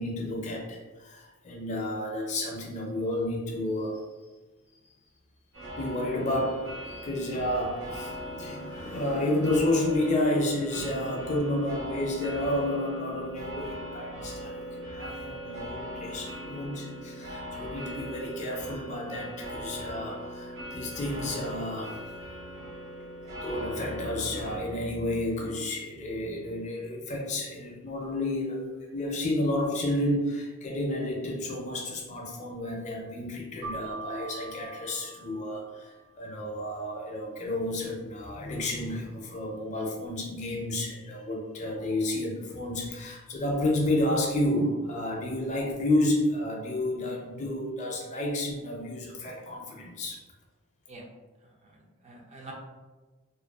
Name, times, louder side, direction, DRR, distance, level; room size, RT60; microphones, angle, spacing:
voice 1, 0.0-4.0 5.8-22.0 23.4-50.2, left 1 dB, 35° left, -1 dB, 0.4 m, -31 dB
sound 1, 5.5-24.6, equal, 80° right, 0.8 m, -40 dB
Keyboard (musical), 33.6-36.2, right 4 dB, 50° right, 0.8 m, -42 dB
voice 2, 51.6-52.5, right 2 dB, 30° right, -1 dB, 0.4 m, -47 dB
2.5 x 2.2 x 2.3 m, 1.3 s
head